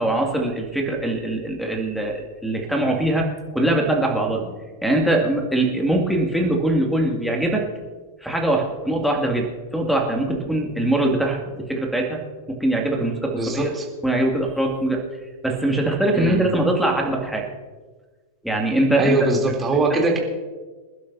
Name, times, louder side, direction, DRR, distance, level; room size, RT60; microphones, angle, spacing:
voice 1, 0.0-4.4 4.8-7.7 8.2-12.2 12.5-13.7 14.0-15.0 15.4-17.4 18.4-19.2 19.7-19.8, right 1 dB, ahead, 2 dB, 2.4 m, -22 dB
voice 2, 13.4-13.8 16.1-16.5 19.0-20.2, right 2 dB, 15° right, 0 dB, 3.3 m, -22 dB
27.5 x 11.5 x 2.8 m, 1.4 s
figure-of-eight pair, 90°, 0 cm